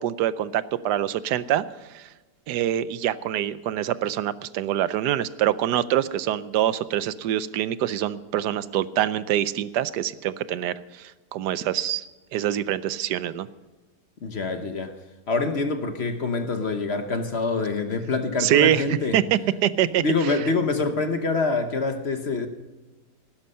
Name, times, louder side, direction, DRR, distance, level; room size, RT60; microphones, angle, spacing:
voice 1, 0.0-1.6 1.9-2.1 2.5-12.0 12.3-13.5 18.4-18.8 19.1-20.0, right 11 dB, 80° right, 16 dB, 1.2 m, -25 dB
voice 2, 14.2-14.9 15.3-19.2 20.0-22.5, left 3 dB, 45° left, 8 dB, 1.1 m, -25 dB
16.5 x 12.0 x 5.6 m, 1.2 s
omnidirectional pair, 1.8 m